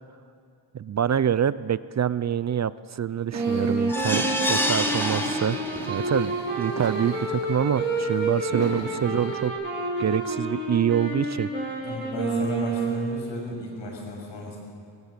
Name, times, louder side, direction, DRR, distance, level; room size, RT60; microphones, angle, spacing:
voice 1, 0.7-4.2 4.5-5.6 5.9-9.5 10.0-11.5, right 9 dB, 40° right, 17 dB, 0.4 m, -26 dB
sound 1, 3.3-13.3, right 2 dB, 25° right, 4.7 m, -29 dB
sound 2, 3.3-9.5, right 4 dB, 75° right, 3.5 m, -37 dB
sound 3, 3.9-6.1 6.6-6.7 7.1-7.2, equal, 5° left, 1.6 m, -28 dB
voice 2, 11.8-14.6, left 2 dB, 80° left, 0 dB, 6.9 m, -34 dB
21.5 x 17.5 x 8.2 m, 2.5 s
wide cardioid pair, 135°, 44 cm